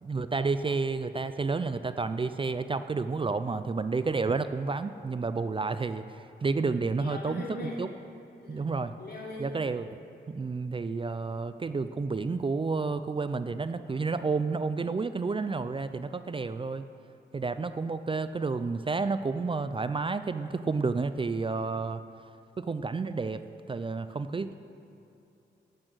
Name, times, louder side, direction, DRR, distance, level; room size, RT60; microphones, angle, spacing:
voice 1, 0.0-7.9 8.5-8.9 9.4-10.0 10.3-16.8 17.3-22.0 22.6-23.4 23.7-24.5, right 4 dB, 30° right, 11 dB, 0.4 m, -30 dB
voice 2, 7.0-7.8 8.4-8.7 9.0-9.6, left 1 dB, 60° left, -4 dB, 3.3 m, -40 dB
12.5 x 8.4 x 6.2 m, 2.6 s
cardioid pair, 70°, 19 cm